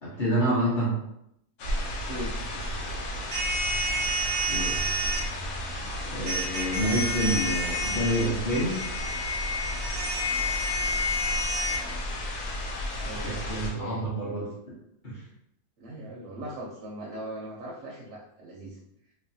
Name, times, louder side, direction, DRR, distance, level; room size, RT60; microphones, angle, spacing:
voice 1, 0.0-1.0 4.5-4.9 6.0-8.8 13.1-14.5 15.0-15.2, right 1 dB, 45° left, -8 dB, 0.7 m, -28 dB
sound 1, 1.6-13.7, left 1 dB, 90° left, 1.3 m, -33 dB
voice 2, 1.7-3.2 10.0-10.9 11.8-12.0 12.8-14.0 15.8-18.8, right 1 dB, 70° right, -2 dB, 0.8 m, -41 dB
sound 2, 3.3-5.2 6.3-11.8, equal, 25° right, 0.5 m, -29 dB
3.0 x 2.0 x 2.6 m, 0.79 s
omnidirectional pair, 1.7 m